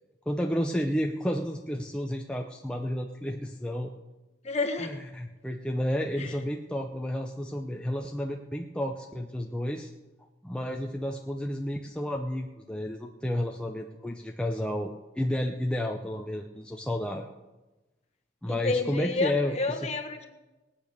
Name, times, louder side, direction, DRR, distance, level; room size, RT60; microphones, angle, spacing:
voice 1, 0.3-3.9 4.8-9.9 10.4-17.3 18.4-19.9, left 1 dB, 5° left, 2 dB, 0.6 m, -31 dB
voice 2, 4.4-5.0 6.2-6.3 18.5-20.3, left 3 dB, 35° left, 3 dB, 1.5 m, -30 dB
19.0 x 8.5 x 6.7 m, 1.1 s
head